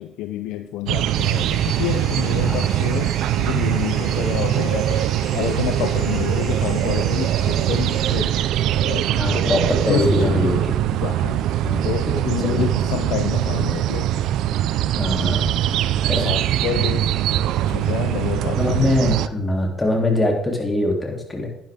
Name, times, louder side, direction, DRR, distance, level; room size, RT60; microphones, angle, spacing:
voice 1, 0.0-8.4 8.8-9.1 9.9-10.6 10.9-11.5 11.8-14.1 16.2-17.2 17.7-19.0, left 12 dB, 80° left, 9 dB, 0.6 m, -28 dB
sound 1, 0.9-19.3, right 12 dB, 75° right, 0.4 m, -22 dB
sound 2, 1.1-8.8, right 3 dB, 50° right, 4.3 m, -38 dB
voice 2, 9.1-10.6 11.6-12.2 12.4-12.7 14.9-15.5 16.1-16.3 18.6-21.5, left 1 dB, 20° left, 2 dB, 2.8 m, -22 dB
10.5 x 10.0 x 3.5 m, 0.82 s
supercardioid pair, 75°, 0 cm